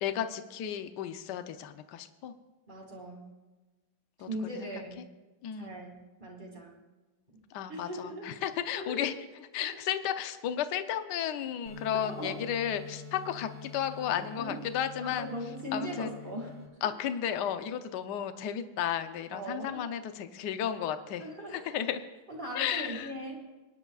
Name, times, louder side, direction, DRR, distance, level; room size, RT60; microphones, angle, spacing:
voice 1, 0.0-2.3 4.6-4.7 5.4-5.8 7.5-9.1 9.5-15.3 15.7-16.1 16.8-21.2 21.5-22.0 22.5-23.1, left 9 dB, 65° left, 9 dB, 1.3 m, -33 dB
voice 2, 2.7-3.3 4.3-5.0 5.6-6.7 7.7-8.4 8.7-9.2 9.6-9.7 11.9-12.4 14.1-14.6 15.0-16.6 16.8-16.9 19.3-19.8 21.2-21.7 22.3-23.4, right 1 dB, 25° right, -1 dB, 2.6 m, -39 dB
sound 1, 11.7-16.7, left 6 dB, 45° right, 2.2 m, -46 dB
23.5 x 10.5 x 2.4 m, 1.2 s
omnidirectional pair, 2.2 m